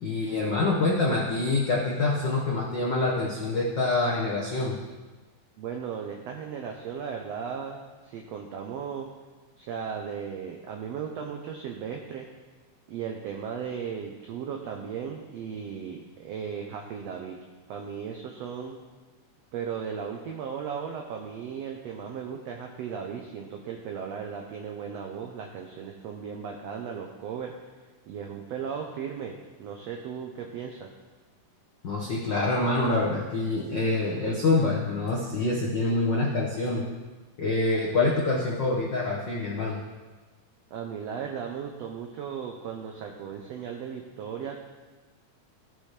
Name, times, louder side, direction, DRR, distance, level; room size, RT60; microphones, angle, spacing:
voice 1, 0.0-4.8 31.8-36.8 37.4-39.8, left 2 dB, 85° left, -4 dB, 0.9 m, -26 dB
voice 2, 5.6-7.8 8.0-9.1 9.6-12.3 12.9-17.4 17.7-18.8 19.5-27.5 28.1-30.9 40.7-44.6, right 7 dB, 85° right, 2 dB, 1.4 m, -36 dB
15.5 x 6.0 x 3.3 m, 1.3 s
omnidirectional pair, 3.8 m